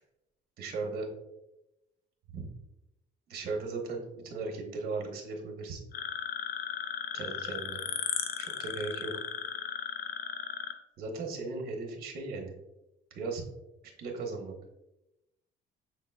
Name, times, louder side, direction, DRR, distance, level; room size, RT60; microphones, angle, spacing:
voice 1, 0.6-1.1 2.3-2.5 3.3-5.8 7.1-7.8 8.4-9.1 11.0-12.5 13.1-13.4 14.0-14.5, right 3 dB, 55° right, 2 dB, 1.0 m, -37 dB
sound 1, 5.9-10.7, left 8 dB, 60° left, 0.5 m, -36 dB
6.2 x 3.8 x 2.3 m, 0.94 s
cardioid pair, 140°, 18 cm